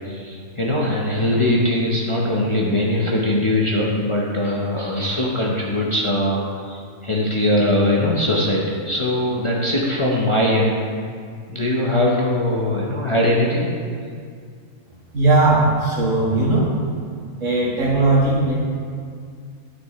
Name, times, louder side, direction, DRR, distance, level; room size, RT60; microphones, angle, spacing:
voice 1, 0.0-10.8 11.5-13.7, left 1 dB, 30° left, -4 dB, 0.7 m, -21 dB
voice 2, 15.1-16.7 17.4-18.6, right 2 dB, 65° right, -5 dB, 2.0 m, -18 dB
11.0 x 6.4 x 3.1 m, 2.2 s
omnidirectional pair, 1.4 m